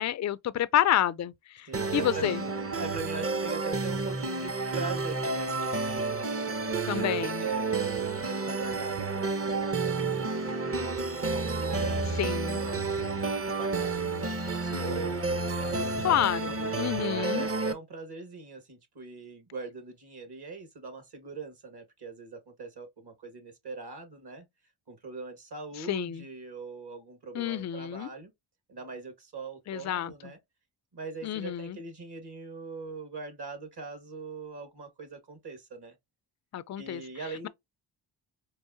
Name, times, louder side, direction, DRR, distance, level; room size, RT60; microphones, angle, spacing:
voice 1, 0.0-1.3 1.6-1.7 1.9-2.4 6.9-7.4 12.2-12.6 16.0-17.4 25.9-26.2 27.3-28.1 29.7-30.1 31.2-31.8 36.5-37.0, left 11 dB, 35° left, 0.4 m, -28 dB
sound 1, 1.7-17.7, right 3 dB, 30° right, 0.8 m, -30 dB
voice 2, 1.7-2.3 2.7-14.0 14.5-16.9 17.2-24.4 24.9-28.3 28.7-30.4 30.9-35.9 36.8-37.5, right 4 dB, 50° right, 1.8 m, -41 dB
4.6 x 2.5 x 2.6 m
cardioid pair, 50°, 49 cm